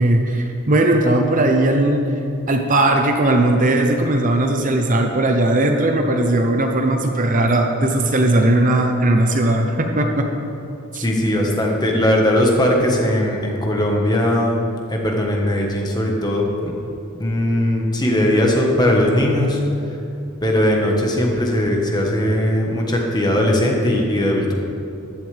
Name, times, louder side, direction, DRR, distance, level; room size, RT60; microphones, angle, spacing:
voice 1, 0.0-2.0 2.5-10.3 10.9-11.0, right 1 dB, 35° right, 3 dB, 0.8 m, -18 dB
voice 2, 11.0-14.6 14.9-16.7 17.2-19.6 20.4-24.5, left 1 dB, 20° left, 0 dB, 1.4 m, -19 dB
15.0 x 11.5 x 3.5 m, 2.7 s
head